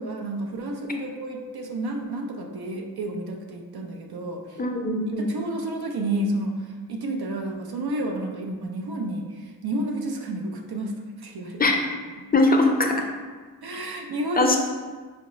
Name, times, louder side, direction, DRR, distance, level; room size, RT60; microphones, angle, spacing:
voice 1, 0.0-4.6 5.2-11.7 13.6-14.6, right 1 dB, 65° right, 2 dB, 0.5 m, -30 dB
voice 2, 4.6-5.3 11.6-11.7 12.3-13.1 14.4-14.6, left 2 dB, 25° left, 2 dB, 0.5 m, -21 dB
4.6 x 2.1 x 3.0 m, 1.4 s
cardioid pair, 50°, 41 cm